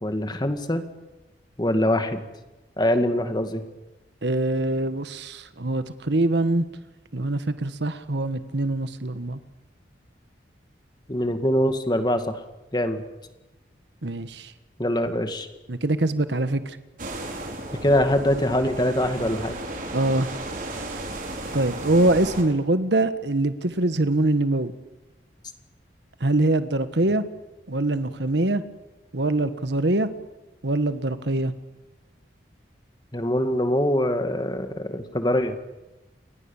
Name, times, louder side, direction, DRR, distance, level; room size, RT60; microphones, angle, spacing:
voice 1, 0.0-0.8 1.6-2.2 2.8-3.6 11.1-12.4 12.7-13.0 14.8-15.5 17.8-19.6 33.1-35.6, left 1 dB, 25° left, 7 dB, 2.1 m, -23 dB
voice 2, 4.2-6.7 7.1-9.4 14.0-14.5 15.7-16.8 19.9-20.3 21.5-24.7 26.2-27.2 27.7-28.6 29.1-30.1 30.6-31.5, right 2 dB, 75° right, 11 dB, 1.4 m, -23 dB
sound 1, 17.0-22.4, right 1 dB, 50° right, 4.8 m, -34 dB
29.5 x 23.0 x 7.3 m, 1.0 s
head